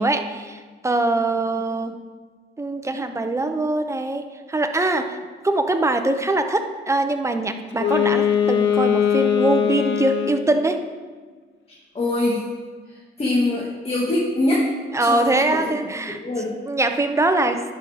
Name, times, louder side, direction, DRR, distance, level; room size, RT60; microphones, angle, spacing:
voice 1, 0.0-2.0 2.6-10.9 14.9-16.2 16.7-17.6, right 2 dB, 15° right, 7 dB, 0.8 m, -23 dB
Wind instrument woodwind instrument, 7.7-10.6, left 9 dB, 70° left, 0.7 m, -21 dB
voice 2, 11.9-12.4 13.2-14.7 15.0-15.7 16.1-16.5, left 2 dB, 30° left, -5 dB, 1.8 m, -23 dB
10.5 x 5.7 x 3.6 m, 1.5 s
cardioid pair, 90°, 20 cm